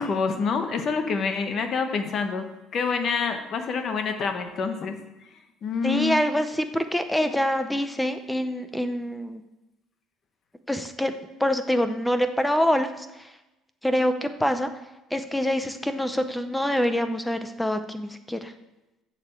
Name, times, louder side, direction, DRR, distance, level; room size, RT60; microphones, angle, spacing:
voice 1, 0.0-2.5 2.7-5.0 5.3-6.3, left 5 dB, 35° left, 6 dB, 1.0 m, -27 dB
voice 2, 5.8-9.4 10.7-11.1 11.4-13.3 13.8-14.7 15.1-18.5, equal, 5° left, 9 dB, 0.6 m, -25 dB
7.6 x 6.9 x 7.5 m, 1.0 s
cardioid pair, 175°, 0 cm